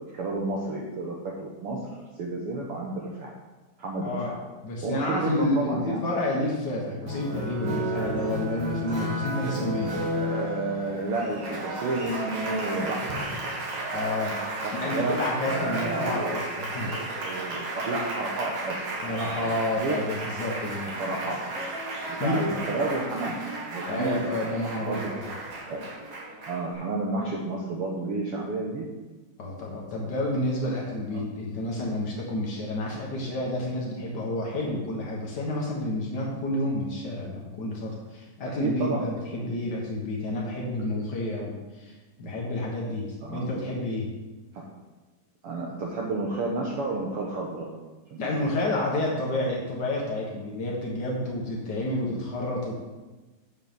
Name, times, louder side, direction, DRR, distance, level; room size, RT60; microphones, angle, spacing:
voice 1, 0.0-1.8 2.1-3.3 3.8-4.3 4.8-6.0 10.1-13.2 14.6-18.8 19.8-20.0 21.0-21.4 22.1-24.5 24.9-25.3 25.7-25.8 26.4-28.9 31.1-31.2 38.6-39.0 39.5-39.6 43.2-43.5 44.5-44.6 45.4-47.7 48.1-48.7, right 2 dB, 80° right, -2 dB, 1.3 m, -31 dB
voice 2, 4.0-4.3 4.6-10.0 13.9-14.4 14.8-16.9 19.0-20.9 22.2-22.6 23.9-25.3 29.4-44.1 48.2-52.8, left 1 dB, 85° left, -3 dB, 0.9 m, -30 dB
Applause, 7.1-26.7, right 1 dB, 50° right, 2.3 m, -33 dB
7.7 x 5.8 x 6.8 m, 1.2 s
omnidirectional pair, 4.1 m